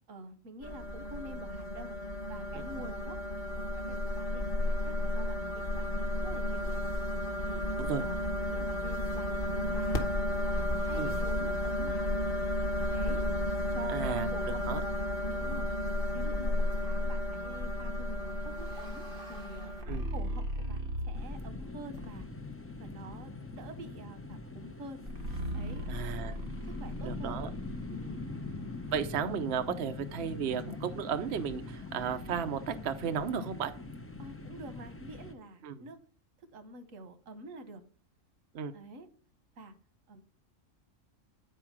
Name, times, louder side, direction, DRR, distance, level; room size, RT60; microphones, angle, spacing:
voice 1, 0.1-1.9 2.3-3.2 3.6-6.8 7.5-7.7 8.0-10.1 10.5-12.1 12.9-13.2 13.7-15.7 16.1-20.8 21.1-22.3 22.8-25.0 25.5-25.9 26.7-27.6 27.9-28.2 34.2-36.0 36.5-37.8 38.7-39.1 39.6-39.7 40.1-40.2, right 2 dB, 90° right, 10 dB, 1.4 m, -48 dB
sound 1, 0.6-19.8, left 1 dB, 50° left, 1.3 m, -33 dB
voice 2, 13.9-14.3 14.7-14.8 19.9-20.1 25.9-26.4 27.0-27.5 27.9-28.0 28.9-33.7 35.6-35.8 38.5-38.7, right 7 dB, 60° right, 8 dB, 0.9 m, -34 dB
sound 2, 18.1-21.5 21.9-22.5 25.0-29.1, equal, 45° right, 1.9 m, -39 dB
sound 3, 21.1-35.3, left 3 dB, 15° left, 0.5 m, -43 dB
9.0 x 4.8 x 5.9 m, 0.43 s
omnidirectional pair, 1.3 m